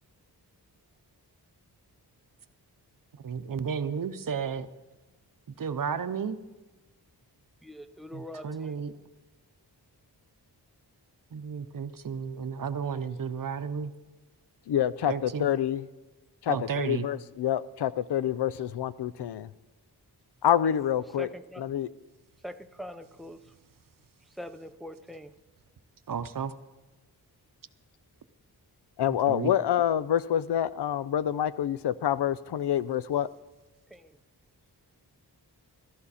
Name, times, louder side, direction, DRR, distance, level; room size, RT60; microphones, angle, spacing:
voice 1, 3.2-4.7 5.5-6.4 8.1-8.9 11.3-13.9 15.1-15.5 16.5-17.1 26.1-26.5 29.1-29.5, right 6 dB, 55° right, 11 dB, 0.7 m, -33 dB
voice 2, 7.6-8.8 21.2-21.6 22.4-23.4 24.4-25.3 33.9-34.1, equal, ahead, 8 dB, 0.6 m, -42 dB
voice 3, 14.7-15.9 16.4-19.5 20.4-21.3 21.6-21.9 29.0-33.3, left 10 dB, 80° left, 16 dB, 0.6 m, -27 dB
14.5 x 14.0 x 4.2 m, 1.2 s
wide cardioid pair, 110°, 39 cm